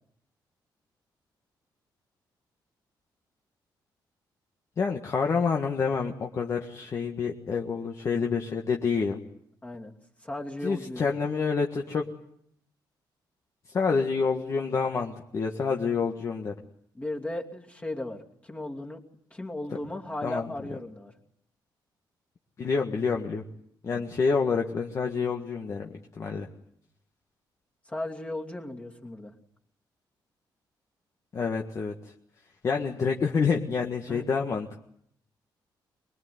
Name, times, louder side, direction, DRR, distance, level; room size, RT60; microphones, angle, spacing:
voice 1, 4.8-9.2 10.6-12.1 13.6-16.6 20.2-20.5 22.6-23.4 23.8-26.5 31.3-32.1 32.6-34.7, left 5 dB, 40° left, 2 dB, 1.7 m, -28 dB
voice 2, 9.6-9.9 10.2-11.1 16.9-19.0 19.3-21.1 23.9-24.0 27.9-29.3 34.1-34.2, left 1 dB, 15° left, 1 dB, 2.8 m, -36 dB
24.5 x 22.0 x 9.5 m, 0.70 s
cardioid pair, 155°, 8 cm